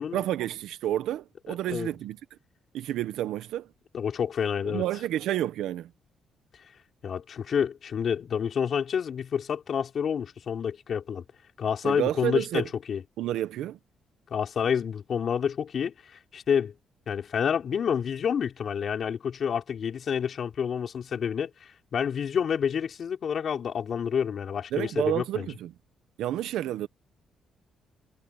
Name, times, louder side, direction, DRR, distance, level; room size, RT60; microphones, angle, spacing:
voice 1, 0.1-2.2 2.7-3.7 4.6-5.9 11.8-12.7 13.2-13.8 24.7-25.7 26.2-26.9, right 12 dB, 85° right, 1.1 m, -30 dB
voice 2, 3.9-4.8 7.0-11.2 11.6-13.0 14.3-15.9 16.3-16.7 17.1-21.5 21.9-25.5, left 7 dB, 55° left, 3.7 m, -28 dB
cardioid pair, 90°, 0 cm